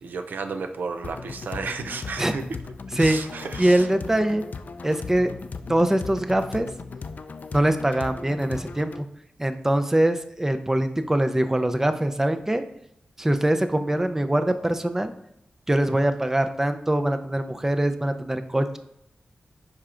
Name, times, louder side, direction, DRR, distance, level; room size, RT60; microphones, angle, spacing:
voice 1, 0.0-2.4 3.0-3.9, right 4 dB, 90° right, 7 dB, 0.4 m, -33 dB
sound 1, 1.0-9.0, left 4 dB, 65° left, 0.4 m, -37 dB
voice 2, 3.6-4.4 4.8-5.3 5.7-6.7 7.5-9.0 9.4-12.6 13.2-15.1 15.7-18.8, right 1 dB, 15° right, 8 dB, 0.5 m, -23 dB
11.0 x 4.4 x 2.5 m, 0.77 s
wide cardioid pair, 70°, 3 cm